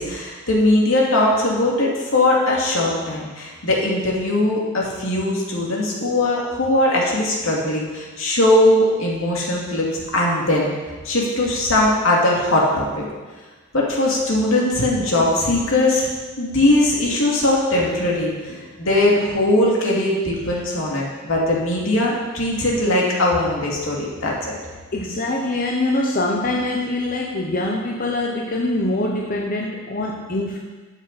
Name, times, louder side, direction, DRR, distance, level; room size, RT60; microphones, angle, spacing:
voice 1, 0.0-10.7 11.0-13.0 13.7-16.1 16.4-18.5 18.8-24.6, left 1 dB, 75° left, -3 dB, 2.6 m, -20 dB
voice 2, 24.9-30.6, left 2 dB, 45° left, -1 dB, 0.9 m, -24 dB
13.5 x 7.3 x 4.2 m, 1.3 s
head